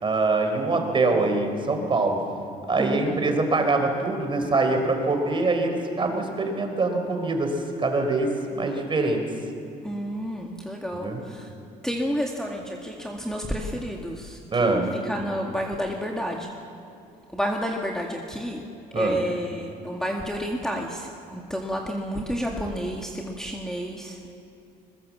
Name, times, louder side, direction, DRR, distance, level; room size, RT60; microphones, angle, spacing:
voice 1, 0.0-2.2 2.7-9.2 11.0-11.2 14.5-14.9 18.9-19.2, right 3 dB, 30° right, 5 dB, 3.9 m, -24 dB
voice 2, 2.8-3.2 9.8-11.5 11.8-16.5 17.3-18.6 19.0-24.2, equal, 5° left, 0 dB, 1.9 m, -30 dB
22.0 x 21.5 x 7.3 m, 2.7 s
cardioid pair, 110°, 17 cm